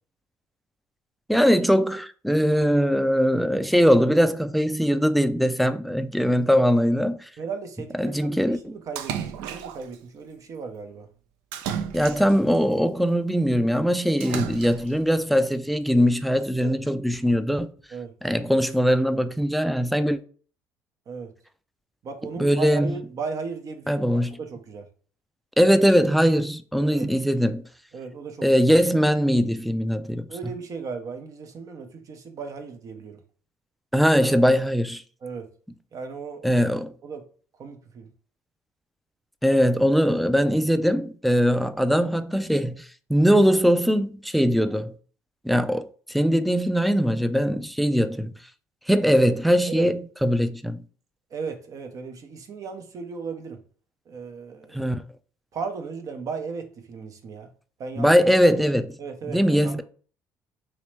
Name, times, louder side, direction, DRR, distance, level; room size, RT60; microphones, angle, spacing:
voice 1, 1.3-7.3 8.0-8.7 11.9-17.7 18.2-20.2 22.4-23.0 23.9-24.4 25.6-27.6 28.4-30.3 33.9-35.0 36.4-36.9 39.4-44.9 45.4-48.3 48.9-50.8 54.7-55.0 58.0-59.0 59.3-59.8, equal, ahead, 0.3 m, -21 dB
voice 2, 7.4-11.1 16.6-16.8 17.9-18.1 21.1-21.3 22.0-24.9 26.9-27.1 27.9-28.5 30.3-33.2 35.2-35.5 35.9-36.5 37.0-37.2 37.6-38.1 49.7-49.9 51.3-53.6 54.1-54.9 55.5-57.5 57.8-58.2 59.0-59.8, right 5 dB, 50° right, 0.7 m, -36 dB
Splash splatter, 9.0-10.0 11.5-12.6 14.2-15.0, right 8 dB, 75° right, 0.3 m, -33 dB
3.0 x 2.9 x 3.2 m
hypercardioid pair, 60°, 7 cm